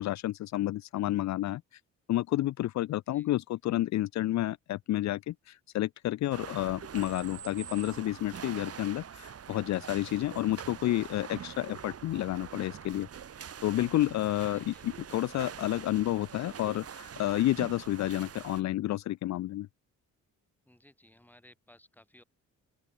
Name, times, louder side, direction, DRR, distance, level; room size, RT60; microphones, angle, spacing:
voice 1, 0.0-1.6 2.1-13.1 13.6-19.7, left 15 dB, 65° left, 0.6 m, -30 dB
sound 1, 6.3-18.6, right 8 dB, 55° right, 4.9 m, -44 dB
voice 2, 14.5-15.0 20.7-22.2, left 1 dB, 5° left, 7.9 m, -59 dB
open air
cardioid pair, 90°, 30 cm